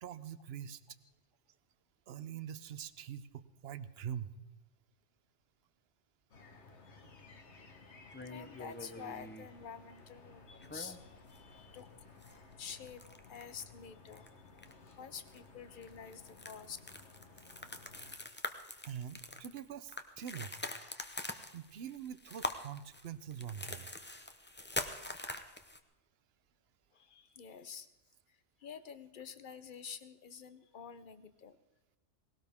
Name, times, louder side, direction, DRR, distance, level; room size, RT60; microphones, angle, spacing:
voice 1, 0.0-0.8 2.1-4.3 17.5-17.6 18.8-20.5 21.5-23.9, right 9 dB, 60° right, 14 dB, 0.9 m, -44 dB
sound 1, 6.3-18.2, left 4 dB, 65° left, 1.6 m, -57 dB
sound 2, 8.1-9.5 10.6-11.4 11.7-11.8 12.2-13.7 14.1-14.3 14.6-14.9 15.3-15.4 15.8-25.8, left 1 dB, 10° left, 0.6 m, -44 dB
voice 2, 8.3-11.9 12.6-13.0 13.3-14.3 15.0-16.8 26.9-27.9 28.3-31.6, left 7 dB, 45° left, 12 dB, 0.9 m, -49 dB
19.0 x 17.5 x 3.6 m, 0.99 s
omnidirectional pair, 1.3 m